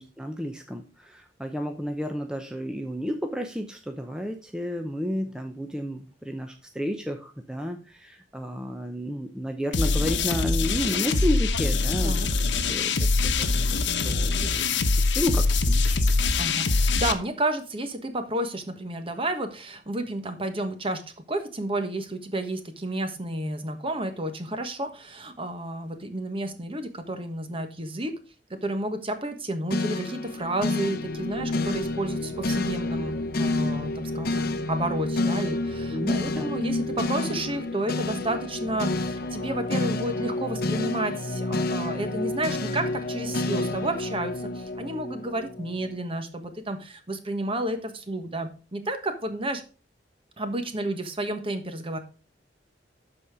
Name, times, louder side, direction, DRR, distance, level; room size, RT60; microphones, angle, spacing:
voice 1, 0.0-12.9 13.2-16.0 35.9-36.5, equal, 5° right, 4 dB, 0.7 m, -32 dB
sound 1, 9.7-17.1, left 3 dB, 85° left, 1.0 m, -23 dB
voice 2, 16.4-21.0 21.3-28.1 28.6-49.6 50.4-52.0, right 1 dB, 30° right, 8 dB, 1.3 m, -31 dB
sound 2, 29.7-46.0, left 2 dB, 60° left, 0.8 m, -29 dB
12.0 x 4.3 x 4.9 m, 0.36 s
head